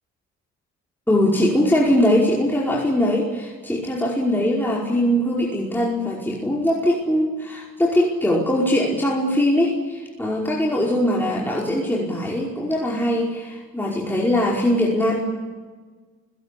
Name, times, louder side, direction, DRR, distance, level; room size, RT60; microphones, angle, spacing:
voice 1, 1.1-15.2, left 1 dB, 5° left, -3 dB, 5.1 m, -21 dB
28.5 x 17.5 x 8.5 m, 1.4 s
cardioid pair, 90°, 30 cm